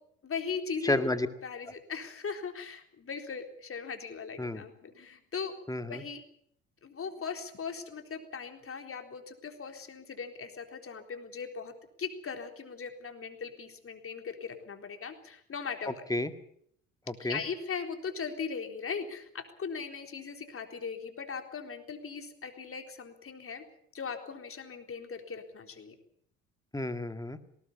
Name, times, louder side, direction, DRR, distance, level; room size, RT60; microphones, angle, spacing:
voice 1, 0.2-5.5 5.9-6.2 6.8-11.7 12.0-15.9 17.2-23.6 23.9-25.9, left 5 dB, 35° left, 6 dB, 4.0 m, -39 dB
voice 2, 0.8-1.3 4.4-4.6 5.7-6.0 15.9-16.3 17.1-17.4 26.7-27.4, left 2 dB, 10° left, 10 dB, 2.1 m, -31 dB
19.5 x 19.0 x 8.5 m, 0.66 s
hypercardioid pair, 65°, 36 cm